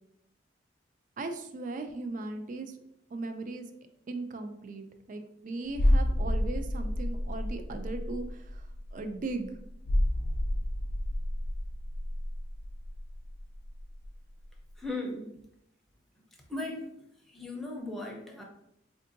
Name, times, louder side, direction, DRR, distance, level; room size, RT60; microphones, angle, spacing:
voice 1, 1.2-2.7 3.1-3.7 4.1-8.7 8.9-9.6, right 3 dB, 45° right, 7 dB, 0.4 m, -38 dB
sound 1, 5.7-14.2 14.4-14.6, left 1 dB, 60° left, 0.4 m, -30 dB
voice 2, 14.8-15.3 16.5-16.9 17.3-18.4, left 2 dB, ahead, -1 dB, 0.6 m, -37 dB
4.4 x 2.5 x 2.6 m, 0.78 s
head